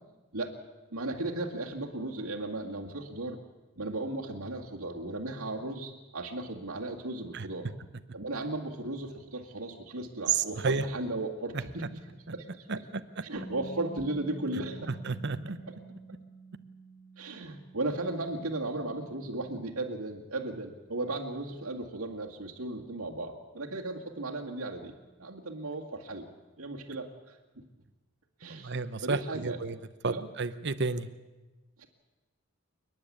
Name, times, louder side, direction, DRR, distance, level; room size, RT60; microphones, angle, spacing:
voice 1, 0.9-3.4 3.8-7.7 8.1-11.9 12.3-12.7 13.2-14.9 17.2-24.9 25.2-26.3 26.6-27.6 28.4-28.7 29.0-29.6 30.1-30.3 31.8-31.9, right 2 dB, 80° right, -4 dB, 2.3 m, -36 dB
voice 2, 10.3-10.8 11.5-11.6 12.7-13.0 14.9-15.6 28.5-29.8 30.0-31.1, right 4 dB, 55° right, 12 dB, 0.9 m, -31 dB
Bass guitar, 13.4-19.6, right 4 dB, 5° right, 1.3 m, -48 dB
29.0 x 10.0 x 8.6 m, 1.1 s
head